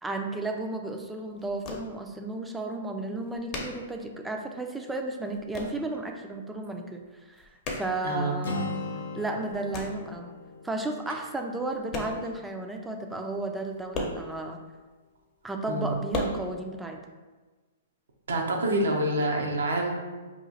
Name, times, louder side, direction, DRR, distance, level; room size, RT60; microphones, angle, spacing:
voice 1, 0.0-8.8 9.1-10.3 10.6-14.6 15.4-17.0, right 2 dB, 10° right, 3 dB, 0.4 m, -33 dB
sound 1, 0.8-0.9 1.1-2.2 2.6-2.7 2.9-4.7 4.9-5.9 6.2-6.7 7.0-8.7 9.1-10.1 10.9-11.0 11.5-12.5 12.7-12.8 13.1-13.2 13.5-14.9 15.4-16.2, left 2 dB, 30° left, 0.7 m, -37 dB
voice 2, 8.0-8.4 15.7-16.0 18.3-19.9, right 1 dB, 80° right, 0 dB, 0.7 m, -27 dB
Acoustic guitar, 8.4-12.4, left 3 dB, 80° left, 0.5 m, -38 dB
3.0 x 2.4 x 3.9 m, 1.3 s
hypercardioid pair, 130°, 0 cm